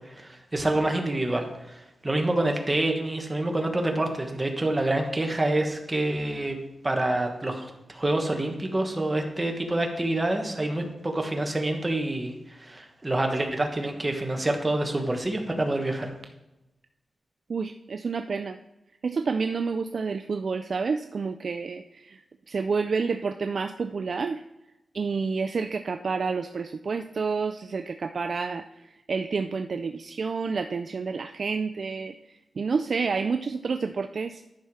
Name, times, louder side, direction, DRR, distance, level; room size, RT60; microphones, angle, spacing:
voice 1, 0.0-6.6 6.8-16.1, right 1 dB, 20° right, 3 dB, 1.3 m, -27 dB
voice 2, 17.5-18.6 19.0-24.4 24.9-32.2 32.6-34.4, right 5 dB, 55° right, 8 dB, 0.3 m, -29 dB
10.5 x 5.7 x 4.7 m, 0.94 s
wide cardioid pair, 115°, 0 cm